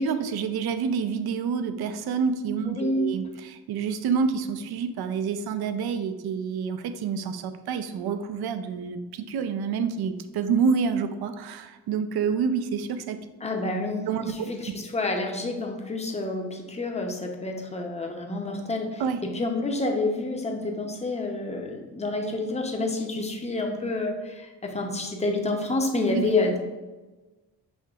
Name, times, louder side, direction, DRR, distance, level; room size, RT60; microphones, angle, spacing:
voice 1, 0.0-13.2 14.1-14.5 19.0-19.2 26.1-26.3, right 6 dB, 65° right, 9 dB, 0.5 m, -28 dB
voice 2, 2.7-3.1 13.4-26.6, left 2 dB, 15° left, 2 dB, 0.6 m, -28 dB
6.3 x 2.8 x 2.3 m, 1.2 s
cardioid pair, 85°, 42 cm